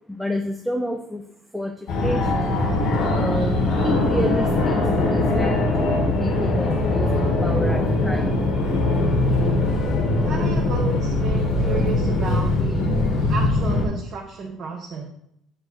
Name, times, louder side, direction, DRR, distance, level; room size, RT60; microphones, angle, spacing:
voice 1, 0.2-1.2 1.5-1.7 2.0-2.6 3.1-3.6 3.8-5.9 6.2-8.3, equal, ahead, 4 dB, 0.5 m, -29 dB
Fixed-wing aircraft airplane, 1.9-13.9, left 2 dB, 55° left, 1.7 m, -21 dB
voice 2, 10.2-12.9 13.3-15.1, right 5 dB, 40° right, 0 dB, 1.0 m, -32 dB
8.2 x 3.2 x 6.0 m, 0.75 s
cardioid pair, 145°, 0 cm